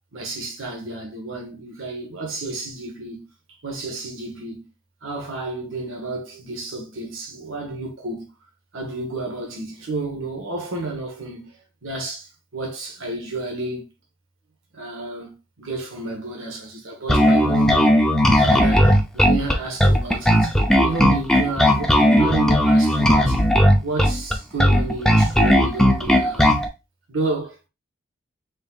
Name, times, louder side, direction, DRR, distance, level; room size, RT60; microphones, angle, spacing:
voice 1, 0.1-3.3 3.6-4.7 5.0-8.3 8.7-13.9 14.7-23.4 23.8-26.5 27.1-27.7, right 3 dB, 85° right, 1.3 m, -31 dB
Bass guitar, 17.1-26.7, equal, 5° left, 0.5 m, -16 dB
5.2 x 3.9 x 2.4 m
head